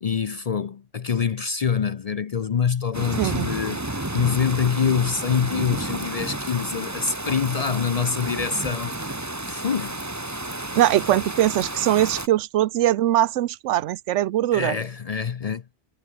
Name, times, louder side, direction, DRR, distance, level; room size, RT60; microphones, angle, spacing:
voice 1, 0.0-9.2 9.5-10.0 14.5-15.6, left 6 dB, 45° left, 0.5 m, -25 dB
sound 1, 2.9-12.3, right 1 dB, 15° right, 1.6 m, -31 dB
voice 2, 10.7-14.8, right 13 dB, 85° right, 0.9 m, -21 dB
omnidirectional pair, 1.2 m